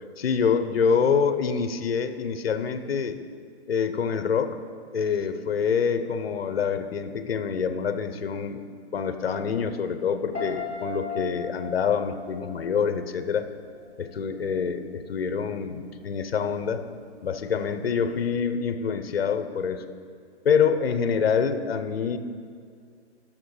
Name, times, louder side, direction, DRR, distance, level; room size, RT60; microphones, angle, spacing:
voice 1, 0.2-3.2 3.7-4.6 4.9-8.6 8.9-13.5 14.0-16.9 17.2-19.9 20.4-22.2, left 6 dB, 60° left, 10 dB, 0.8 m, -26 dB
Piano, 10.3-13.4 13.7-14.2, left 4 dB, 10° right, 2.4 m, -36 dB
12.0 x 7.4 x 4.8 m, 2.3 s
hypercardioid pair, 175°, 35 cm